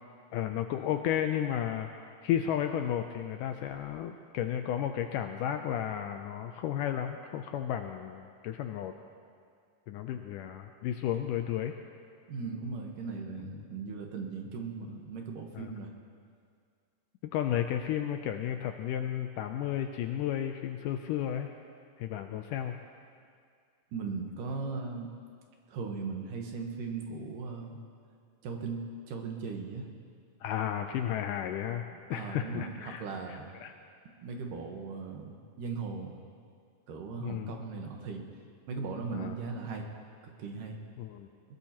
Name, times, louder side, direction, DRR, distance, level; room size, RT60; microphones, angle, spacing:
voice 1, 0.3-1.9 2.2-8.9 9.9-11.8 15.5-15.7 17.3-21.5 22.0-22.8 30.4-33.7 37.2-37.6 39.1-39.3 41.0-41.3, left 10 dB, 80° left, 6 dB, 1.9 m, -33 dB
voice 2, 12.3-15.9 23.9-25.1 25.7-27.8 28.4-29.9 32.1-33.5 34.2-36.2 36.9-38.3 38.7-39.9 40.2-40.8, right 4 dB, 70° right, 2 dB, 2.7 m, -38 dB
20.5 x 20.0 x 2.9 m, 2.2 s
omnidirectional pair, 4.2 m